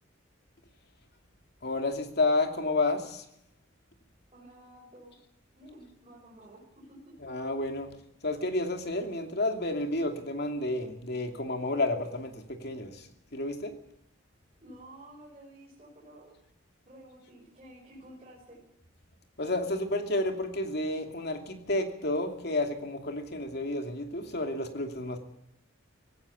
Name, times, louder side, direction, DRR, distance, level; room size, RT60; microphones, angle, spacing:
voice 1, 1.6-3.2 7.2-7.9 8.2-13.7 19.4-25.2, left 2 dB, 55° left, 5 dB, 2.7 m, -31 dB
voice 2, 4.3-5.2 5.5-7.1 14.6-16.3 16.9-18.6, right 1 dB, 30° right, -5 dB, 5.9 m, -51 dB
19.0 x 16.5 x 8.6 m, 0.80 s
head